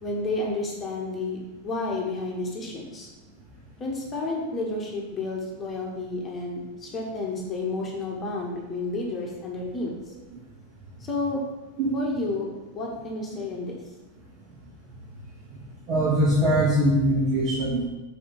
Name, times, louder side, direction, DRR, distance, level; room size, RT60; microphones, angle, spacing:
voice 1, 0.0-3.1 3.8-9.9 11.0-11.4 11.9-13.8, left 2 dB, 25° left, -2 dB, 1.5 m, -31 dB
voice 2, 15.9-17.8, right 1 dB, 40° right, -7 dB, 2.3 m, -22 dB
6.6 x 5.0 x 5.3 m, 1.1 s
figure-of-eight pair, 90°, 0 cm